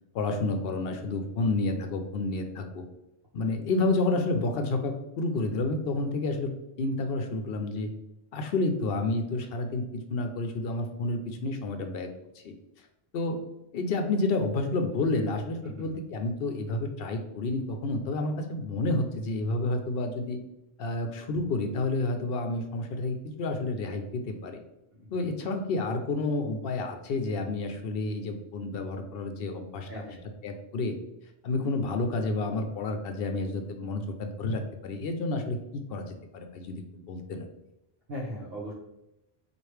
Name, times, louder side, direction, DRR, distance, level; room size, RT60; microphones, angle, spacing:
voice 1, 0.1-2.8 3.3-6.5 6.8-7.9 8.3-12.1 12.4-12.5 13.1-13.4 13.7-20.4 20.8-24.6 25.1-29.9 30.4-30.9 31.4-37.5, left 2 dB, 65° left, 6 dB, 0.7 m, -30 dB
voice 2, 15.6-16.0 24.9-25.3 29.9-30.2 38.1-38.7, equal, 65° right, -4 dB, 1.0 m, -39 dB
4.5 x 2.5 x 3.2 m, 0.89 s
omnidirectional pair, 1.1 m